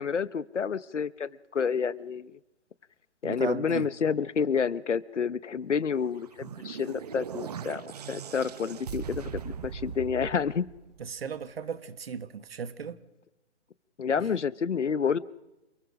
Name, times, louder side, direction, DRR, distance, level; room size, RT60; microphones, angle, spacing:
voice 1, 0.0-2.3 3.2-10.6 14.0-15.2, left 6 dB, 85° left, 1.0 m, -29 dB
voice 2, 3.2-3.9 11.0-13.0 14.2-14.3, right 6 dB, 55° right, 1.5 m, -36 dB
sound 1, 6.0-11.4, right 7 dB, 35° right, 0.8 m, -40 dB
28.0 x 18.5 x 6.3 m
hypercardioid pair, 155°, 35 cm